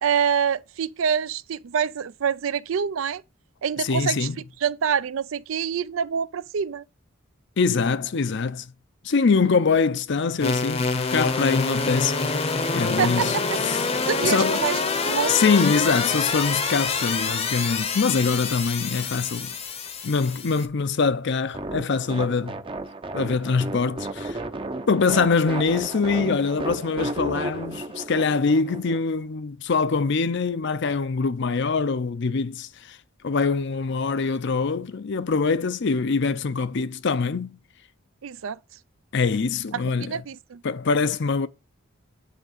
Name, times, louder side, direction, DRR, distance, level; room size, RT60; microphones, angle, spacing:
voice 1, 0.0-3.2 3.6-4.3 4.6-6.8 13.0-13.6 14.1-15.4 38.2-38.6 39.9-40.6, right 7 dB, 70° right, 0.4 m, -26 dB
voice 2, 3.8-4.4 7.6-8.7 9.0-13.4 13.6-13.8 14.2-14.6 15.3-19.5 20.0-22.6 23.1-24.4 24.9-33.0 33.2-37.5 39.1-40.2 40.6-41.5, left 4 dB, 55° left, 0.6 m, -24 dB
sound 1, 10.4-20.7, left 4 dB, 30° left, 0.8 m, -26 dB
sound 2, 21.5-29.0, right 2 dB, 25° right, 0.6 m, -33 dB
9.4 x 3.6 x 6.6 m
head